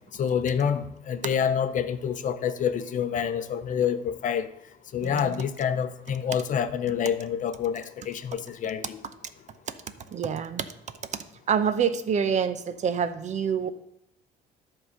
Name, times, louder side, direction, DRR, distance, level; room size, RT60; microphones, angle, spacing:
voice 1, 0.2-4.5 4.9-9.0, left 8 dB, 50° left, 10 dB, 0.7 m, -27 dB
voice 2, 5.0-5.4 10.1-10.7 11.5-13.7, right 7 dB, 45° right, 12 dB, 0.7 m, -26 dB
11.0 x 3.9 x 6.5 m, 0.76 s
cardioid pair, 110°, 17 cm